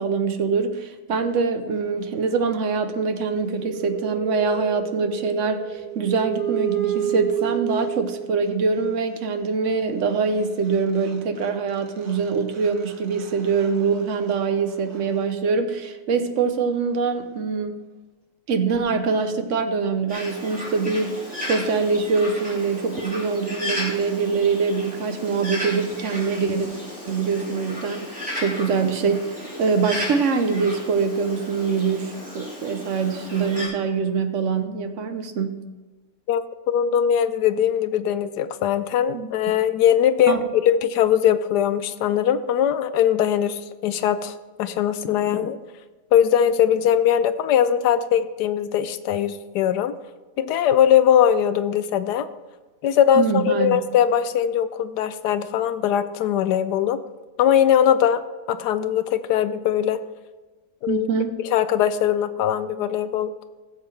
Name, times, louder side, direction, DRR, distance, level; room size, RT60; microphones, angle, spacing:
voice 1, 0.0-17.8 18.5-21.2 21.5-26.7 27.1-35.6 39.1-39.3 40.3-40.4 53.1-53.8 60.9-61.3, right 5 dB, 55° right, 8 dB, 0.9 m, -24 dB
sound 1, 3.1-8.5 10.4-10.5 10.7-16.1, right 11 dB, 80° right, 1.9 m, -32 dB
Bird, 20.1-33.7, left 1 dB, 5° right, 2.9 m, -34 dB
voice 2, 36.3-45.6 46.1-49.9 50.4-52.3 52.8-57.0 57.4-58.2 58.5-60.0 60.8-61.1 61.4-63.3, left 9 dB, 75° left, 12 dB, 1.1 m, -20 dB
16.0 x 7.3 x 3.3 m, 1.2 s
omnidirectional pair, 1.9 m